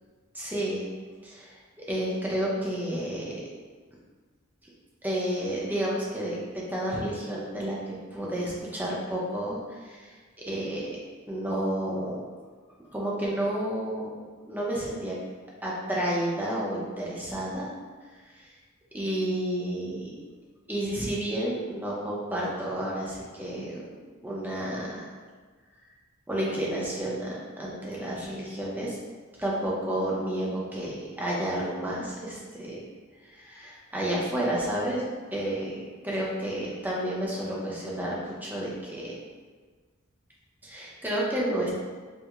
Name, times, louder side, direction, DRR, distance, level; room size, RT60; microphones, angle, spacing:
voice 1, 0.4-0.9 1.2-3.4 5.0-11.0 11.3-12.2 12.9-15.2 15.6-17.7 18.3-18.5 18.9-20.2 20.7-23.8 24.2-25.1 26.3-29.0 29.4-32.8 33.2-35.0 35.3-39.2 40.6-41.7, right 1 dB, 10° right, -5 dB, 0.5 m, -31 dB
4.4 x 2.0 x 2.4 m, 1.5 s
head